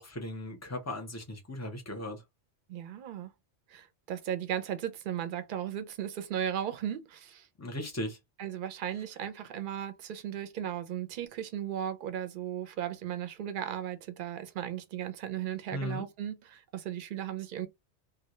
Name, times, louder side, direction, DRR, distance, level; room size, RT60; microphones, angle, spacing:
voice 1, 0.0-2.2 7.6-8.2 15.7-16.0, left 1 dB, 20° left, 0.5 m, -37 dB
voice 2, 2.7-3.3 3.7-7.5 8.4-17.7, right 10 dB, 60° right, 0.6 m, -36 dB
2.2 x 2.1 x 2.9 m
omnidirectional pair, 1.2 m